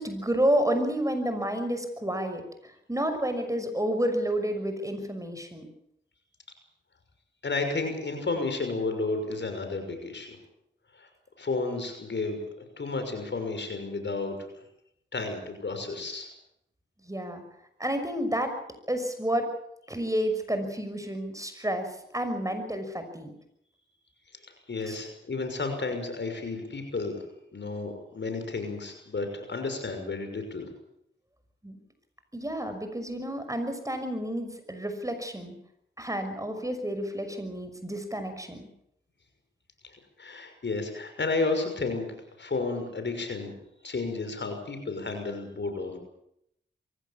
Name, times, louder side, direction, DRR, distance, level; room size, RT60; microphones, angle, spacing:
voice 1, 0.0-5.7 17.1-17.4 17.8-18.6 18.9-19.5 19.9-23.3 24.9-25.0 31.6-31.8 32.3-35.5 36.0-38.7, right 1 dB, 15° right, 7 dB, 6.0 m, -30 dB
voice 2, 7.4-10.4 10.9-11.1 11.4-14.6 15.1-16.3 24.4-27.2 27.5-30.7 39.8-43.5 43.8-46.0, left 3 dB, 65° left, 6 dB, 6.1 m, -32 dB
23.0 x 16.5 x 8.6 m, 0.76 s
cardioid pair, 40°, 20 cm